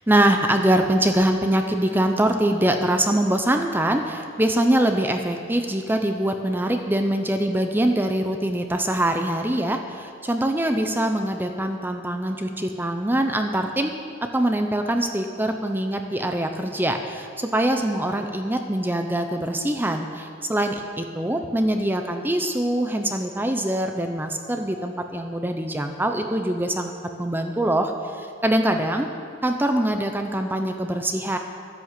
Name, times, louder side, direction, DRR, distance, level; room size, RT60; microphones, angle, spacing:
voice 1, 0.1-13.9 14.2-26.9 27.2-29.1 29.4-31.4, right 1 dB, 10° right, 5 dB, 0.6 m, -23 dB
12.0 x 11.0 x 7.4 m, 2.2 s
head